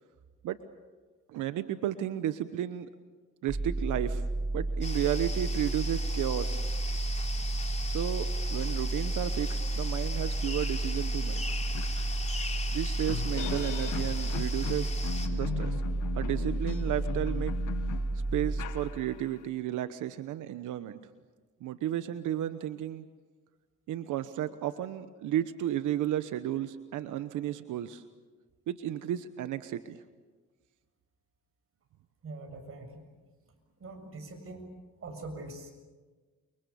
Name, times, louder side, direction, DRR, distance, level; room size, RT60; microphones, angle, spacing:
voice 1, 1.3-2.9 3.4-4.2 4.5-6.6 7.9-11.6 12.7-14.9 15.3-15.8 16.1-17.5 18.3-21.0 21.6-23.0 23.9-28.0 28.7-30.0, right 12 dB, 85° right, 11 dB, 1.1 m, -33 dB
basscapes Outhere, 3.5-19.3, right 2 dB, 10° right, 0.9 m, -32 dB
sound 1, 4.8-15.3, left 3 dB, 20° left, 3.4 m, -40 dB
sound 2, 11.0-11.1 11.4-19.4, left 10 dB, 80° left, 1.8 m, -40 dB
voice 2, 32.2-33.0 33.8-34.7 35.0-35.7, right 2 dB, 45° right, 5 dB, 7.2 m, -43 dB
30.0 x 24.0 x 7.1 m, 1.3 s
cardioid pair, 90°, 30 cm